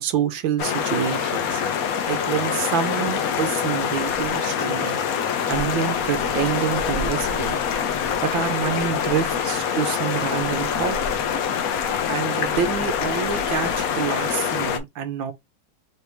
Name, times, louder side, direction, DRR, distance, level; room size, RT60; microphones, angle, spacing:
voice 1, 0.0-1.6 2.1-5.0 5.5-7.6 8.2-11.0 12.1-15.3, right 9 dB, 70° right, 1.4 m, -27 dB
sound 1, 0.6-14.8, left 7 dB, 70° left, 0.8 m, -25 dB
4.0 x 3.3 x 3.0 m
omnidirectional pair, 2.4 m